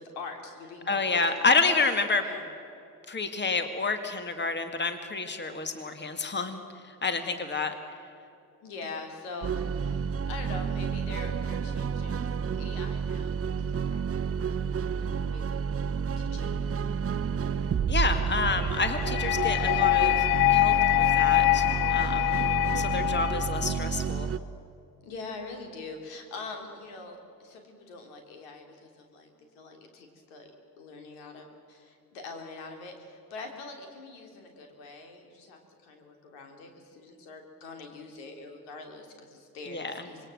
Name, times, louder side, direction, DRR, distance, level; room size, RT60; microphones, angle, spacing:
voice 1, 0.0-1.6 2.2-2.4 7.0-7.4 8.6-14.0 15.0-16.6 22.1-22.6 25.0-30.5 30.8-40.3, left 3 dB, 70° left, 4 dB, 3.4 m, -44 dB
voice 2, 0.9-2.2 3.1-6.6 6.8-7.7 17.9-21.7 21.9-22.2 22.7-24.3 39.7-40.0, left 4 dB, 20° left, 8 dB, 2.1 m, -29 dB
sound 1, 9.4-24.4, right 6 dB, 30° right, 0.9 m, -30 dB
sound 2, 18.9-23.9, left 23 dB, 50° left, 0.5 m, -24 dB
26.0 x 22.0 x 7.8 m, 2.7 s
figure-of-eight pair, 50°, 48 cm